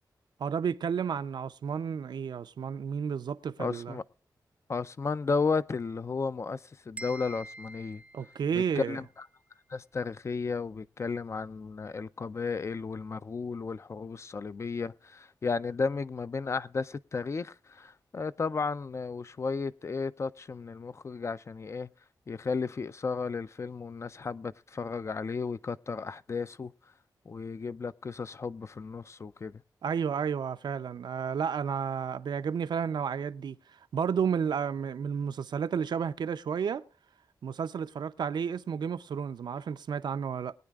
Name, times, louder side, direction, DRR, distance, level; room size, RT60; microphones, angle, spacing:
voice 1, 0.4-4.0 8.1-9.0 29.8-33.6 33.9-36.8 37.4-40.5, right 7 dB, 80° right, 0.6 m, -31 dB
voice 2, 3.6-4.0 4.7-8.0 8.5-9.3 9.7-21.9 22.3-26.7 27.3-29.6, left 4 dB, 40° left, 0.4 m, -34 dB
sound 1, 7.0-9.0, right 2 dB, 15° right, 0.5 m, -46 dB
21.5 x 9.7 x 2.4 m
wide cardioid pair, 115°, 7 cm